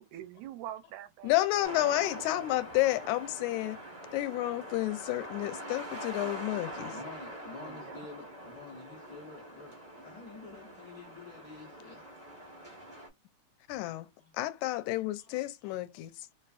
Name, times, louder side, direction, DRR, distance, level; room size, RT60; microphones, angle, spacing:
voice 1, 0.0-1.7 2.0-2.4 7.6-8.0, right 12 dB, 85° right, 2.0 m, -45 dB
voice 2, 1.2-3.8 4.1-6.9 13.7-14.1 14.3-16.3, left 16 dB, 80° left, 1.9 m, -30 dB
sound 1, 1.6-13.1, right 1 dB, 65° right, 0.4 m, -44 dB
voice 3, 6.9-12.1 14.2-14.3 15.2-15.8, left 4 dB, 60° left, 0.9 m, -50 dB
4.4 x 2.5 x 2.4 m
omnidirectional pair, 3.3 m